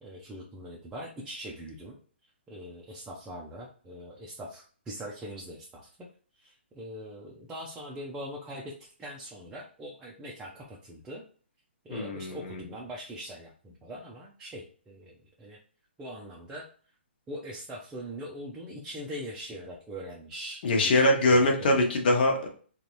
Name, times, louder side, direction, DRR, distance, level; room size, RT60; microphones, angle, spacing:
voice 1, 0.0-2.0 2.5-6.1 6.4-8.7 9.0-11.2 11.8-15.6 16.0-16.7 17.3-21.8, equal, 10° right, -3 dB, 0.6 m, -42 dB
voice 2, 11.9-12.6 20.6-22.5, left 1 dB, 50° left, 1 dB, 1.1 m, -23 dB
3.8 x 2.5 x 3.0 m, 0.42 s
hypercardioid pair, 135°, 6 cm